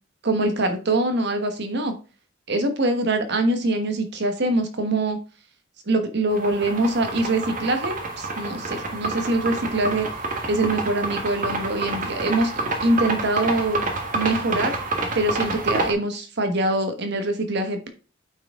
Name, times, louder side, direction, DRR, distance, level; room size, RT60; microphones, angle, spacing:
voice 1, 0.2-1.9 2.5-5.2 5.9-10.1 10.5-13.8 14.1-14.7 15.1-17.9, right 2 dB, 60° right, 6 dB, 1.2 m, -24 dB
sound 1, 6.3-15.9, right 2 dB, 45° right, 1.4 m, -28 dB
9.0 x 4.8 x 3.7 m, 0.35 s
head